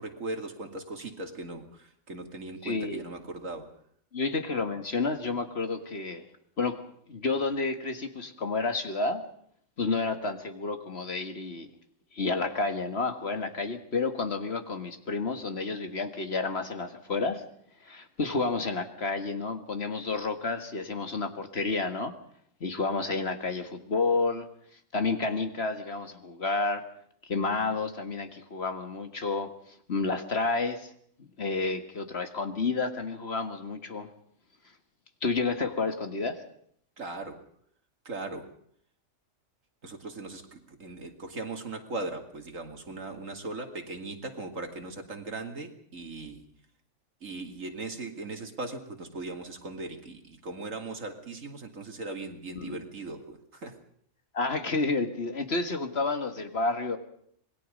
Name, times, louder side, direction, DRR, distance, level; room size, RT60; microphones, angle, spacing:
voice 1, 0.0-3.7 37.0-37.4 38.0-38.5 39.8-46.4 47.2-53.8, right 2 dB, 80° right, 5 dB, 3.0 m, -39 dB
voice 2, 2.6-3.0 4.1-6.2 6.6-6.8 7.1-9.2 9.8-11.7 12.1-17.4 17.8-22.1 22.6-24.5 24.9-26.8 27.2-29.5 29.9-30.9 31.4-34.1 35.2-36.4 52.6-52.8 54.3-57.0, left 3 dB, 55° left, 7 dB, 2.1 m, -30 dB
26.5 x 20.5 x 5.3 m, 0.65 s
omnidirectional pair, 1.3 m